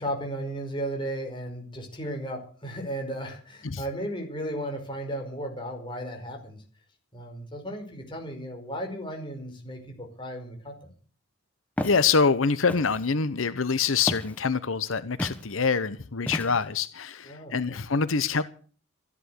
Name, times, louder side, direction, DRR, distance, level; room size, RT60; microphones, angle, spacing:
voice 1, 0.0-6.6 7.1-10.9 17.2-17.8, equal, 25° left, 5.3 m, -35 dB
voice 2, 11.8-18.4, left 5 dB, 85° left, 0.9 m, -25 dB
Walk footsteps, 11.8-12.0 12.7-13.1 14.1-14.4 15.2-15.4 16.3-16.8, equal, 10° left, 1.5 m, -32 dB
15.0 x 11.0 x 8.2 m
head